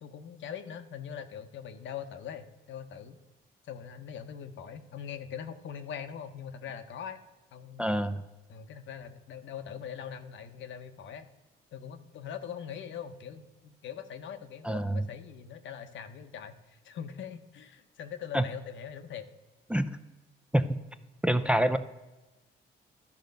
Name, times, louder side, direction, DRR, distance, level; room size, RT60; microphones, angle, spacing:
voice 1, 0.0-3.2 3.6-7.2 7.5-8.0 8.5-11.3 11.7-19.3, left 8 dB, 70° left, 9 dB, 0.9 m, -42 dB
voice 2, 7.8-8.2 14.6-15.0 18.3-18.4 19.7-19.9 20.5-20.8 21.2-21.8, right 1 dB, 5° right, 9 dB, 0.4 m, -26 dB
12.0 x 5.2 x 5.2 m, 1.1 s
cardioid pair, 90°, 20 cm